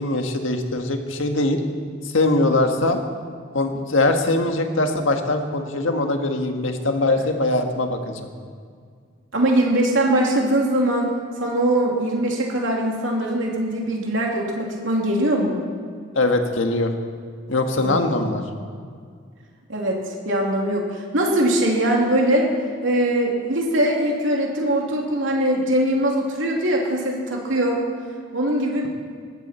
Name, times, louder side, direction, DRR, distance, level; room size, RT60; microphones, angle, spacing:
voice 1, 0.0-1.6 2.0-3.0 3.5-8.3 16.1-16.9 17.5-18.4, left 2 dB, 90° left, 4 dB, 1.6 m, -22 dB
voice 2, 9.3-11.1 11.4-15.6 17.8-18.2 19.7-22.5 22.8-27.8 28.3-28.9, right 1 dB, 80° right, -1 dB, 2.9 m, -21 dB
20.0 x 15.0 x 4.4 m, 2.1 s
head